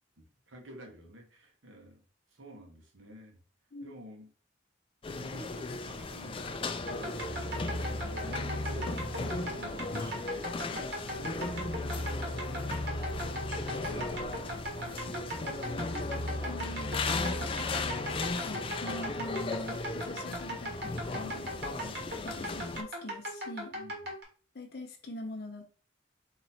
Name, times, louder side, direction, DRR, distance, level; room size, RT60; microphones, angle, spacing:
voice 1, 0.2-2.0 2.3-3.4 3.8-4.3 5.1-6.6 7.7-11.4 13.6-15.8 21.1-21.5 21.8-22.1 23.7-24.1, equal, 90° right, 2 dB, 1.2 m, -49 dB
sound 1, 5.0-22.8, left 3 dB, 25° left, 0.3 m, -37 dB
sound 2, 6.8-19.9, left 1 dB, 75° left, 1.2 m, -39 dB
sound 3, 6.9-24.2, equal, 60° right, 1.4 m, -39 dB
voice 2, 16.5-17.7 18.4-21.5 22.2-23.7 24.5-25.8, left 1 dB, 55° left, 1 dB, 0.7 m, -43 dB
4.0 x 3.0 x 4.1 m, 0.40 s
head